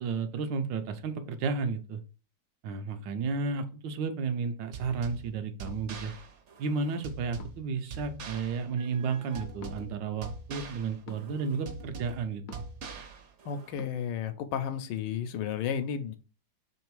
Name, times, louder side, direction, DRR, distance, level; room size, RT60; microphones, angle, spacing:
voice 1, 0.0-2.0 2.6-6.1 6.6-12.4, right 5 dB, 85° right, 8 dB, 1.3 m, -32 dB
sound 1, 4.7-13.7, right 4 dB, 60° right, 0.8 m, -43 dB
sound 2, 5.7-5.8 7.4-7.7 9.6-9.8 11.1-11.3 12.5-12.8 13.8-13.9, left 2 dB, 65° left, 0.9 m, -47 dB
voice 2, 13.4-16.2, left 8 dB, 85° left, 9 dB, 1.3 m, -33 dB
3.5 x 3.3 x 4.6 m, 0.36 s
omnidirectional pair, 1.9 m